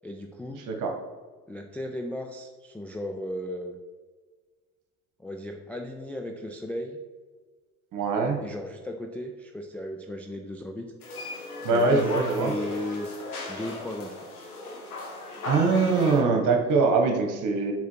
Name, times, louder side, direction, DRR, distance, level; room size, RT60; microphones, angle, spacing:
voice 1, 0.0-0.7 1.5-3.8 5.2-7.0 8.4-10.9 11.7-13.1 13.5-14.2, left 1 dB, 5° left, 2 dB, 0.3 m, -35 dB
voice 2, 7.9-8.4 11.6-12.5 15.4-17.7, right 4 dB, 45° right, 4 dB, 1.4 m, -23 dB
sound 1, 11.0-16.2, left 1 dB, 80° left, 1.3 m, -36 dB
7.2 x 3.9 x 4.5 m, 1.4 s
figure-of-eight pair, 60°, 44 cm